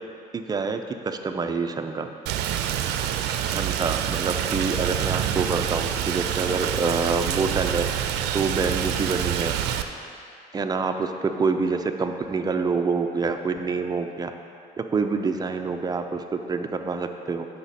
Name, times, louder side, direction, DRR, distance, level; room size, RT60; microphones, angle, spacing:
voice 1, 0.3-2.1 3.5-7.9 8.3-9.6 10.5-14.3 14.8-17.5, right 4 dB, 25° right, 6 dB, 0.5 m, -26 dB
Rain, 2.3-9.8, right 10 dB, 90° right, 0.4 m, -27 dB
7.6 x 5.9 x 4.1 m, 2.6 s
cardioid pair, 110°, 17 cm